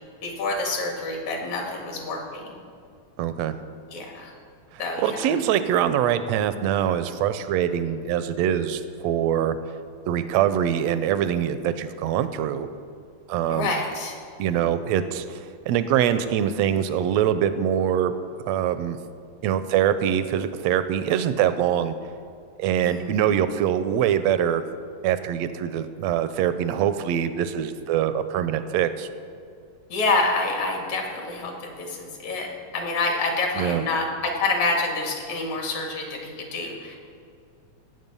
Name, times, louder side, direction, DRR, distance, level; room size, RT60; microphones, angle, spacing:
voice 1, 0.2-2.6 3.9-4.3 4.8-5.2 13.5-14.1 22.8-23.2 29.9-32.5 32.7-37.1, left 3 dB, 75° left, 1 dB, 3.3 m, -27 dB
voice 2, 3.2-3.5 4.7-9.6 10.1-12.7 13.3-13.7 14.4-18.1 18.5-19.0 19.4-21.9 22.6-24.6 25.0-29.1 33.6-33.8, right 10 dB, 80° right, 11 dB, 1.6 m, -24 dB
17.5 x 7.7 x 5.4 m, 2.3 s
omnidirectional pair, 3.4 m